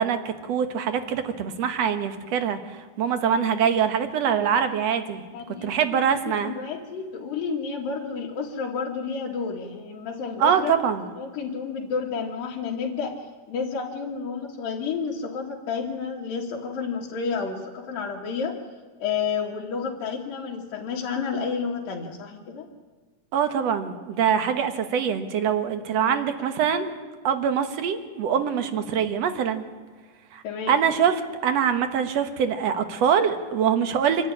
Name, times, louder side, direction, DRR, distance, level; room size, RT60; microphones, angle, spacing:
voice 1, 0.0-2.6 3.0-5.2 5.6-6.5 10.4-11.0 23.3-26.9 27.2-29.6 30.3-34.3, right 7 dB, 55° right, 8 dB, 2.2 m, -24 dB
voice 2, 5.3-5.7 6.4-10.7 11.2-18.6 19.0-22.7 30.4-30.8, left 5 dB, 85° left, -4 dB, 3.6 m, -30 dB
26.0 x 13.0 x 10.0 m, 1.3 s
omnidirectional pair, 3.9 m